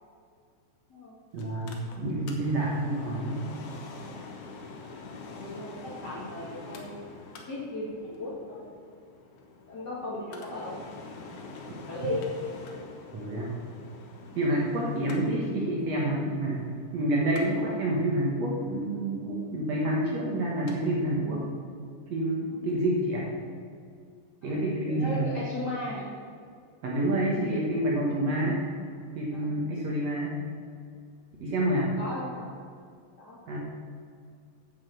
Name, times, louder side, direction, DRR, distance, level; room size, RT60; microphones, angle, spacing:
voice 1, 1.3-3.5 13.1-13.6 14.4-16.7 16.9-21.4 22.1-23.3 24.4-25.3 26.8-28.6 29.1-30.3 31.4-31.9 33.5-33.6, right 1 dB, 85° right, -4 dB, 1.4 m, -28 dB
Mechanical fan, 1.4-20.8 21.1-21.2, left 3 dB, 70° left, 1.9 m, -46 dB
voice 2, 5.3-7.0 7.5-8.6 9.7-10.8 11.9-12.2 22.5-22.7 24.4-26.1 27.4-27.6 29.3-29.6 31.7-32.5 33.2-33.6, left 1 dB, 85° left, -6 dB, 0.9 m, -37 dB
9.5 x 6.5 x 7.7 m, 2.2 s
omnidirectional pair, 5.1 m